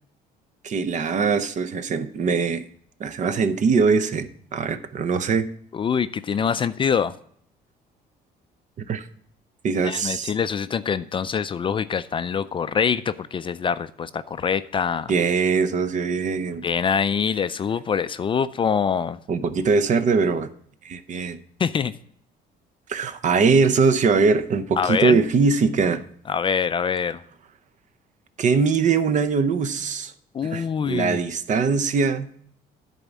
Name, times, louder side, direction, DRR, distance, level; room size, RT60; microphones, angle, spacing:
voice 1, 0.6-2.6 3.0-5.5 8.8-9.1 9.6-10.3 15.1-16.6 19.3-20.5 20.8-21.4 22.9-26.0 28.4-30.1 30.4-32.3, right 5 dB, 45° right, 0.7 m, -22 dB
voice 2, 5.7-7.1 9.8-15.1 16.6-19.2 21.6-21.9 24.8-25.2 26.3-27.2 30.3-31.2, left 7 dB, 30° left, 0.4 m, -24 dB
10.5 x 4.2 x 7.1 m
cardioid pair, 110°, 17 cm